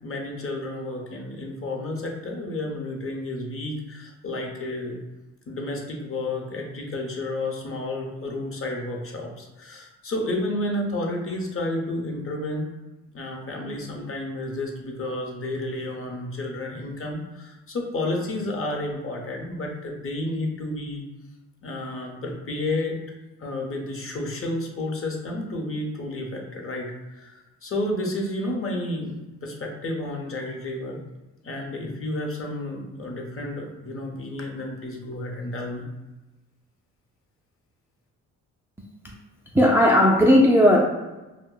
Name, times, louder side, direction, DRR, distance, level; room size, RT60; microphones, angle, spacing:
voice 1, 0.0-5.0 5.5-12.7 13.1-21.0 21.6-23.0 23.4-31.0 31.4-35.8, left 1 dB, 40° left, 0 dB, 0.8 m, -31 dB
voice 2, 39.5-40.9, equal, 5° right, -2 dB, 0.4 m, -16 dB
2.5 x 2.2 x 3.7 m, 1.1 s
supercardioid pair, 70°, 33 cm